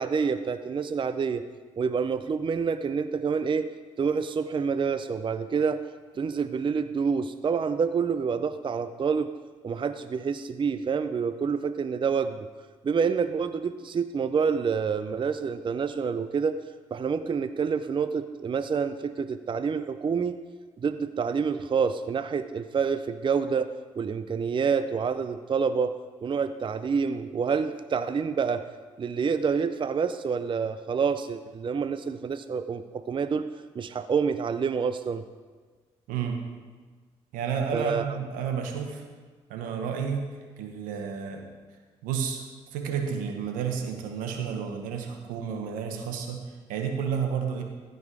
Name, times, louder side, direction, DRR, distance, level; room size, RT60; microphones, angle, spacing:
voice 1, 0.0-1.4 1.8-3.7 4.0-5.8 6.2-9.3 9.6-12.4 12.8-16.6 16.9-20.4 20.8-25.9 26.2-28.6 29.0-33.5 33.8-35.2 37.7-38.1, right 6 dB, 35° right, 11 dB, 0.5 m, -27 dB
voice 2, 36.1-36.4 37.3-39.0 39.5-40.3 40.6-41.4 42.0-42.4 42.7-46.4 46.7-47.6, right 7 dB, 85° right, 4 dB, 1.1 m, -31 dB
15.0 x 5.4 x 4.7 m, 1.4 s
supercardioid pair, 55°, 14 cm